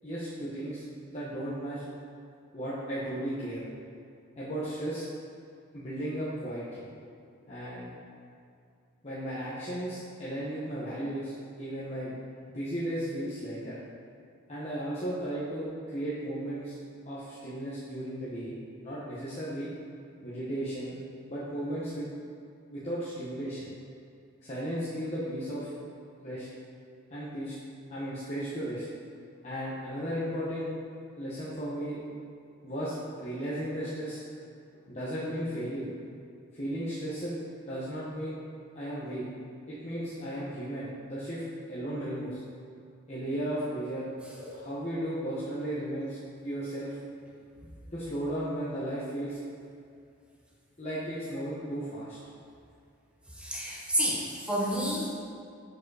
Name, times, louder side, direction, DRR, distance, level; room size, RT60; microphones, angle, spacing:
voice 1, 0.0-0.8 1.1-1.8 2.5-3.6 4.4-5.0 5.7-6.9 7.5-7.9 9.0-12.1 12.5-13.8 14.5-16.7 17.1-18.5 18.8-19.7 20.2-20.9 21.3-22.1 22.7-23.7 24.4-25.7 26.2-26.5 27.1-27.5 27.9-28.8 29.4-30.7 31.2-32.0 32.6-34.2 34.9-35.9 36.5-38.4 38.7-39.3 39.7-41.4 41.7-42.4 43.1-44.0 44.5-46.2 46.4-47.0 47.9-49.4 50.8-52.2, right 1 dB, 30° left, -10 dB, 1.1 m, -35 dB
voice 2, 53.4-55.1, equal, 5° right, -5 dB, 1.1 m, -30 dB
7.0 x 5.0 x 4.8 m, 2.4 s
head